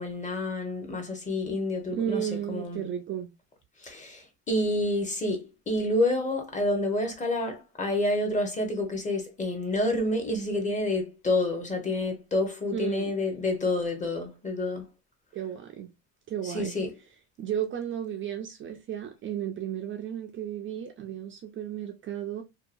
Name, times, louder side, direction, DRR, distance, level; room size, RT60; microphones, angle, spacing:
voice 1, 0.0-2.9 3.8-14.9 16.4-16.9, left 2 dB, 20° left, 0.8 m, -28 dB
voice 2, 1.9-3.3 12.7-13.1 15.3-15.9 16.3-16.7 17.4-22.4, right 10 dB, 35° right, 0.4 m, -33 dB
2.7 x 2.2 x 2.5 m
cardioid pair, 130°, 35 cm